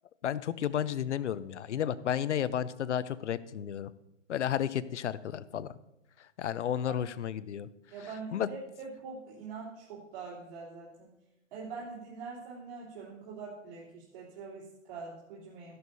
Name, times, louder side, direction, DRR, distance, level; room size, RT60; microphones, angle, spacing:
voice 1, 0.2-3.9 4.3-5.7 6.4-7.7 8.3-8.5, left 9 dB, 65° left, 16 dB, 0.7 m, -32 dB
voice 2, 7.9-11.1 11.5-15.8, right 4 dB, 45° right, -9 dB, 3.2 m, -44 dB
13.5 x 11.0 x 2.7 m, 0.93 s
hypercardioid pair, 165°, 39 cm